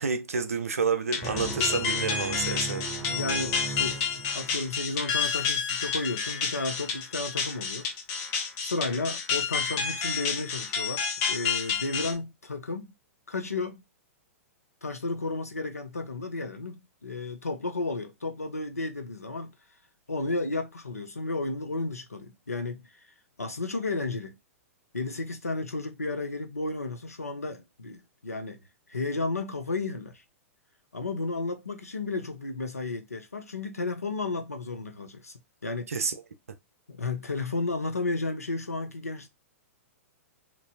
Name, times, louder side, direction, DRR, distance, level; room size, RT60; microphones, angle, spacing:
voice 1, 0.0-2.9 35.9-36.1, right 5 dB, 75° right, 0.5 m, -29 dB
sound 1, 1.1-12.1, left 6 dB, 35° left, 0.8 m, -30 dB
sound 2, 1.2-4.8, right 2 dB, 25° right, 0.7 m, -37 dB
voice 2, 3.0-7.9 8.6-12.9 13.3-13.8 14.8-19.5 20.1-22.9 23.4-24.4 24.9-30.2 30.9-35.9 36.9-39.3, left 3 dB, 85° left, 0.6 m, -33 dB
3.0 x 2.5 x 2.6 m
figure-of-eight pair, 105°, 8 cm